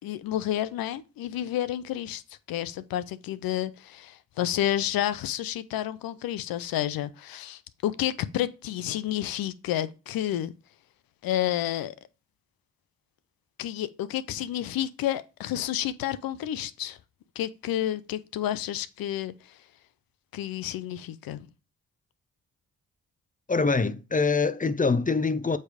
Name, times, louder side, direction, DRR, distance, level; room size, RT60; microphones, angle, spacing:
voice 1, 0.0-2.2 2.5-10.5 11.2-12.0 13.6-17.0 17.4-19.6 20.3-21.5, left 12 dB, 85° left, 0.6 m, -30 dB
voice 2, 23.5-25.6, left 4 dB, 25° left, 0.7 m, -24 dB
8.1 x 3.3 x 5.0 m
supercardioid pair, 40°, 34 cm